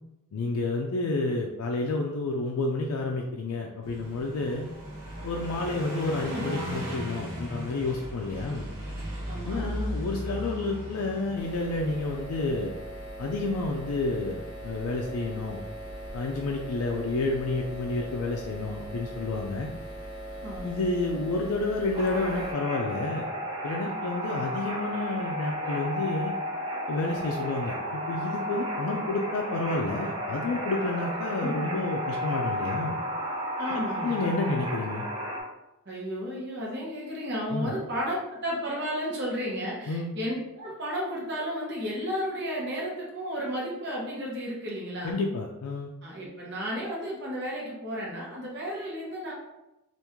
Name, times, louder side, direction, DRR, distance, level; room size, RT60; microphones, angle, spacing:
voice 1, 0.3-4.7 5.2-8.7 9.4-12.7 13.2-15.6 16.1-19.7 20.6-23.3 23.6-26.3 26.9-33.0 34.0-35.1 37.5-37.7 39.9-40.1 45.0-45.9, left 2 dB, 80° left, 1 dB, 0.4 m, -30 dB
Car passing by, 3.8-12.3, equal, 70° right, 1.3 m, -37 dB
voice 2, 9.3-9.7 20.4-20.7 31.4-31.8 33.6-34.2 35.9-45.2 46.0-49.3, equal, 50° right, -4 dB, 0.9 m, -33 dB
sound 1, 11.4-22.5, right 1 dB, 45° left, 0.8 m, -40 dB
sound 2, 21.9-35.4, equal, 20° right, 0.5 m, -33 dB
2.9 x 2.5 x 3.5 m, 0.92 s
head